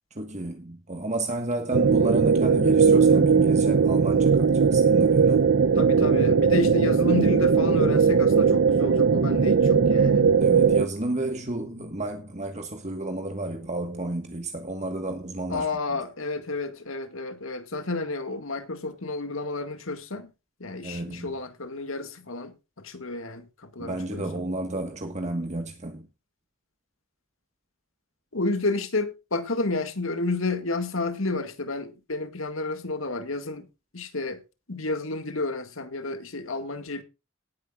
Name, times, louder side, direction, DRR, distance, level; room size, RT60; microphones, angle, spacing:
voice 1, 0.1-5.5 10.4-16.0 20.8-21.3 23.8-26.1, right 1 dB, 35° right, 1.5 m, -31 dB
sound 1, 1.7-10.9, right 5 dB, 65° right, 0.6 m, -19 dB
voice 2, 5.8-10.4 15.5-20.3 20.6-24.3 28.3-33.7 33.9-34.4 34.7-37.0, left 2 dB, 75° left, 1.9 m, -31 dB
18.5 x 10.0 x 2.5 m
head